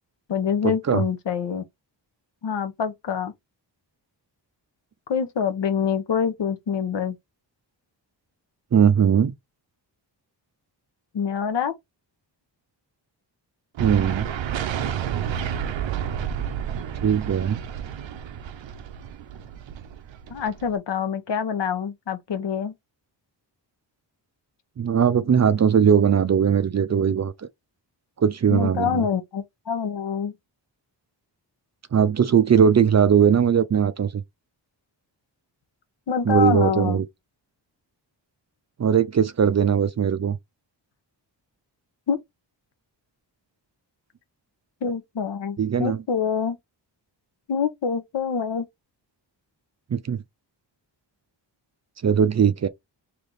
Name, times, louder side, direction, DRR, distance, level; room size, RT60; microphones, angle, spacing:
voice 1, 0.3-1.6 2.4-3.3 5.1-7.2 11.1-11.7 20.3-22.7 28.5-30.3 36.1-37.0 42.1-42.2 44.8-46.6 47.5-48.6, left 7 dB, 70° left, 0.9 m, -26 dB
voice 2, 8.7-9.3 13.8-14.3 17.0-17.6 24.8-27.3 28.2-29.1 31.9-34.2 36.2-37.1 38.8-40.4 45.6-46.0 49.9-50.2 52.0-52.7, right 7 dB, 40° right, 0.4 m, -19 dB
sound 1, 13.8-20.8, right 9 dB, 90° right, 0.7 m, -30 dB
3.3 x 3.0 x 3.9 m
wide cardioid pair, 110°, 44 cm